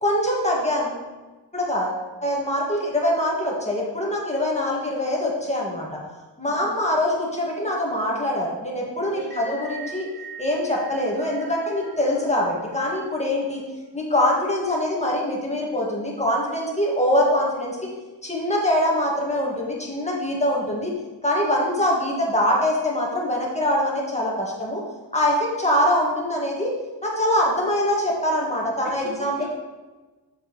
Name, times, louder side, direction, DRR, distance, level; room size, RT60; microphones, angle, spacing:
voice 1, 0.0-1.0 1.5-5.9 6.4-10.1 10.4-13.6 13.9-17.9 18.2-20.9 21.2-24.8 25.1-26.7 27.0-29.4, left 1 dB, 15° left, -4 dB, 1.8 m, -23 dB
voice 2, 9.1-9.6 28.8-29.4, right 1 dB, 25° right, -5 dB, 1.3 m, -39 dB
sound 1, 9.2-13.5, right 3 dB, 55° right, 2.0 m, -42 dB
7.6 x 7.1 x 3.1 m, 1.2 s
wide cardioid pair, 95°, 44 cm